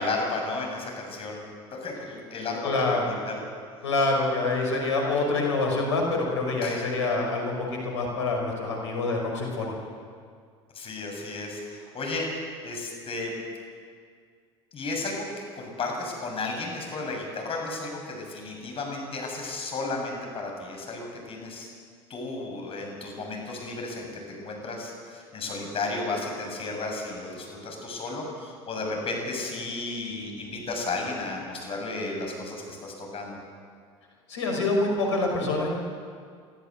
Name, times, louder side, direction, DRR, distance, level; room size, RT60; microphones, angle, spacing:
voice 1, 0.0-1.4 1.7-3.5 6.6-6.9 10.7-12.3 12.6-13.3 14.7-15.3 15.6-21.7 22.1-33.4, left 3 dB, 40° left, 1 dB, 7.4 m, -33 dB
voice 2, 2.6-3.0 3.8-9.7 34.3-35.7, left 3 dB, 85° left, 1 dB, 5.4 m, -26 dB
24.5 x 13.5 x 8.2 m, 2.1 s
hypercardioid pair, 75°, 15 cm